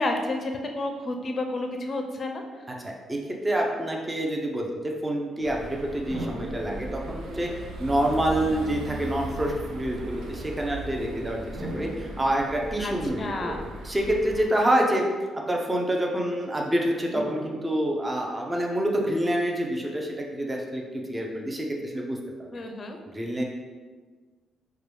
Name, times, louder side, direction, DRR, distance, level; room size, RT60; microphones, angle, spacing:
voice 1, 0.0-2.4 12.8-12.9 13.2-13.6 22.5-23.0, left 2 dB, 40° left, 4 dB, 0.5 m, -30 dB
voice 2, 2.8-3.2 3.4-4.7 5.0-7.5 7.8-13.5 13.8-15.1 15.3-22.5 23.1-23.4, right 1 dB, 15° right, 0 dB, 0.5 m, -27 dB
sound 1, 5.4-14.4, right 1 dB, 90° right, 0.5 m, -38 dB
sound 2, 6.1-7.8 8.8-8.9 11.6-13.3 17.1-18.4, right 1 dB, 70° right, 1.2 m, -40 dB
4.6 x 2.2 x 3.3 m, 1.4 s
cardioid pair, 105°, 0 cm